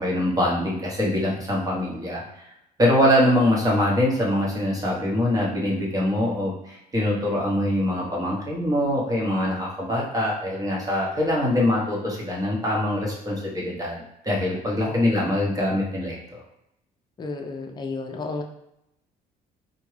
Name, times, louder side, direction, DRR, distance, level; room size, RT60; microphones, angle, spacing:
voice 1, 0.0-2.5 2.8-16.4, left 1 dB, 20° right, -3 dB, 1.0 m, -23 dB
voice 2, 17.2-18.4, left 3 dB, 25° left, 3 dB, 0.5 m, -32 dB
3.5 x 2.2 x 3.2 m, 0.81 s
cardioid pair, 110°, 17 cm